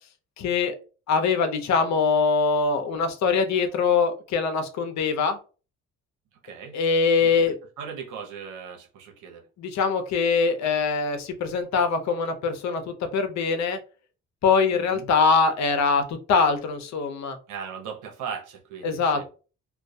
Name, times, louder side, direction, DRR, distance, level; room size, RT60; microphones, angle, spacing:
voice 1, 0.4-0.8 1.1-5.4 6.7-7.5 9.6-13.8 14.4-17.4 18.8-19.3, left 5 dB, 65° left, 0.6 m, -23 dB
voice 2, 6.4-6.8 7.2-7.3 7.8-9.4 14.7-15.1 17.5-19.3, right 6 dB, 85° right, 0.8 m, -38 dB
2.2 x 2.2 x 2.6 m
cardioid pair, 90°, 30 cm